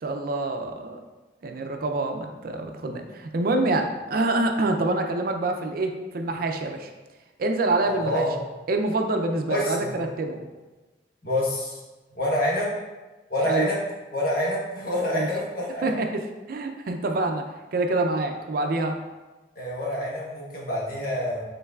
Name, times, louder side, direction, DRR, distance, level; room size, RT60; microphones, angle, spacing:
voice 1, 0.0-1.0 1.4-6.9 7.4-8.3 8.7-10.5 13.4-13.7 15.1-15.3 15.8-16.2 16.5-19.0, right 2 dB, 55° right, 5 dB, 0.4 m, -26 dB
voice 2, 7.8-8.4 9.5-10.0 11.2-11.8 12.1-12.7 13.3-13.8 14.1-16.0 19.6-21.4, left 1 dB, 55° left, -3 dB, 1.1 m, -27 dB
5.5 x 3.8 x 2.3 m, 1.2 s
head